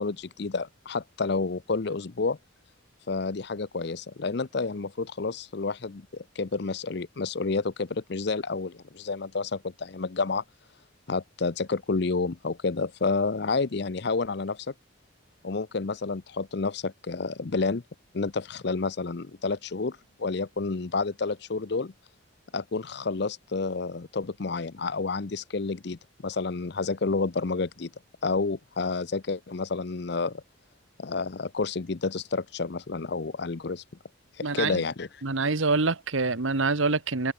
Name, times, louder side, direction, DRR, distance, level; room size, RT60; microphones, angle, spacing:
voice 1, 0.0-2.4 3.1-10.4 11.1-14.7 15.4-17.8 18.1-21.9 22.5-27.9 28.2-30.4 31.0-33.8 34.4-35.1, left 4 dB, 55° left, 0.6 m, -30 dB
voice 2, 34.4-34.8 35.2-37.3, right 3 dB, 75° right, 1.4 m, -26 dB
head